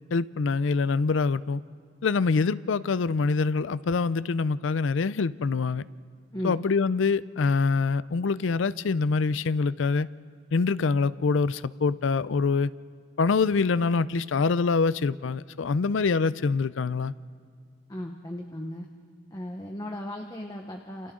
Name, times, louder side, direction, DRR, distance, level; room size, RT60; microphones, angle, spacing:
voice 1, 0.1-1.6 2.0-5.8 6.4-10.1 10.5-12.7 13.2-17.1, left 4 dB, 70° left, 17 dB, 0.5 m, -25 dB
voice 2, 17.9-18.9 19.3-21.1, left 1 dB, 20° left, 2 dB, 1.0 m, -36 dB
29.0 x 28.5 x 3.8 m, 2.1 s
head